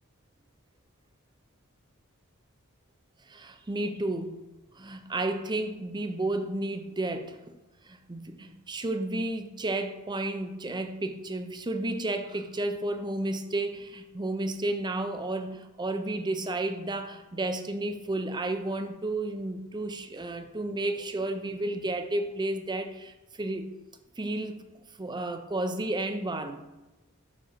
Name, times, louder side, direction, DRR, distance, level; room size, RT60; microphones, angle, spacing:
voice 1, 3.3-4.4 4.7-7.4 7.8-23.6 24.2-24.6 25.0-26.7, right 2 dB, 20° right, 8 dB, 0.5 m, -32 dB
5.8 x 5.0 x 5.0 m, 1.1 s
head